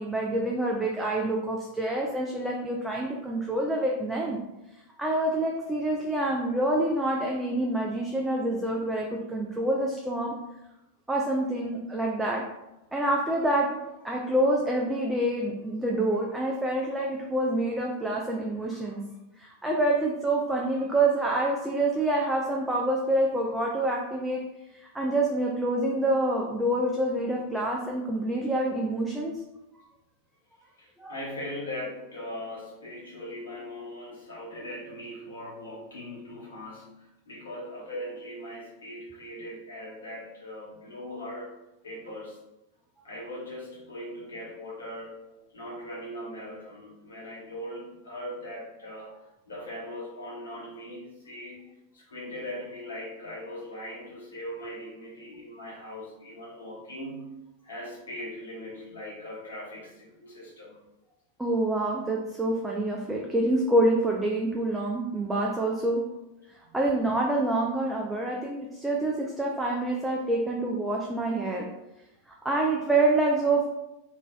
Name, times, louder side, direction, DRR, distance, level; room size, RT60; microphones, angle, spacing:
voice 1, 0.0-4.4 5.0-10.4 11.1-12.4 12.9-19.0 19.4-24.4 24.7-29.3 31.0-31.1 61.4-66.0 66.7-71.7 72.4-73.7, right 1 dB, 5° right, -2 dB, 0.4 m, -27 dB
voice 2, 30.8-41.5 41.8-42.4 43.0-57.4 57.6-60.8 66.7-66.8, left 1 dB, 70° left, -6 dB, 1.1 m, -40 dB
3.0 x 2.6 x 2.2 m, 0.93 s
figure-of-eight pair, 90°, 0 cm